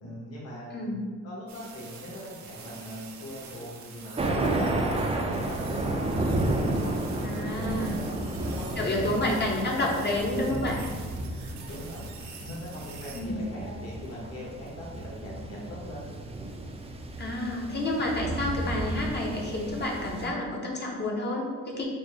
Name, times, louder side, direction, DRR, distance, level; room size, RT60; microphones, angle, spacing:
voice 1, 0.0-0.9 1.2-6.3 6.5-8.0 8.4-9.9 10.5-10.9 11.6-12.1 12.4-16.1, left 1 dB, 55° left, -5 dB, 1.2 m, -41 dB
voice 2, 0.7-1.1 7.2-8.0 8.8-10.8 13.1-13.4 17.2-21.8, left 1 dB, 35° left, -1 dB, 0.7 m, -29 dB
sound 1, 1.5-13.2, right 5 dB, 70° right, 0.6 m, -47 dB
Thunder, 4.2-20.3, right 2 dB, 20° right, 0.4 m, -32 dB
4.1 x 2.1 x 3.2 m, 1.5 s
cardioid pair, 90°, 30 cm